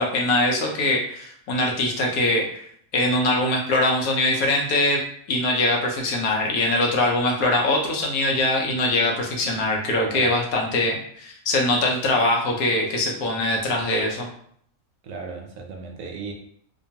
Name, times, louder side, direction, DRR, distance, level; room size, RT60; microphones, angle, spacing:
voice 1, 0.0-2.6 2.9-5.0 5.3-14.3, left 2 dB, 80° left, 0 dB, 1.1 m, -22 dB
voice 2, 15.0-16.3, right 4 dB, 70° right, 2 dB, 0.9 m, -36 dB
2.9 x 2.2 x 2.7 m, 0.63 s
omnidirectional pair, 1.5 m